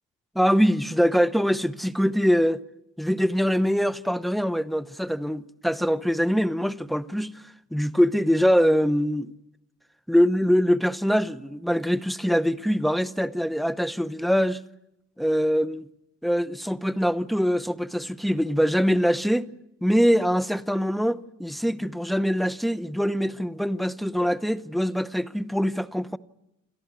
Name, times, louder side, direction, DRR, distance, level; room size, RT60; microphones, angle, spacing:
voice 1, 0.3-2.6 3.0-7.3 7.7-9.3 10.1-14.6 15.2-15.9 16.2-19.5 19.8-26.2, equal, ahead, 0.8 m, -23 dB
28.0 x 13.5 x 9.8 m
cardioid pair, 90°, 30 cm